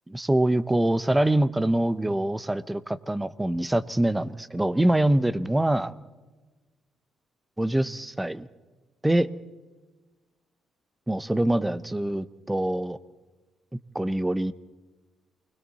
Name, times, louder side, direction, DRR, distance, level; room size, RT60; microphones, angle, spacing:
voice 1, 0.1-5.9 7.6-8.5 9.0-9.3 11.1-13.0 13.9-14.5, right 1 dB, 10° right, 15 dB, 0.9 m, -24 dB
29.0 x 21.5 x 4.2 m, 1.2 s
cardioid pair, 90°, 0 cm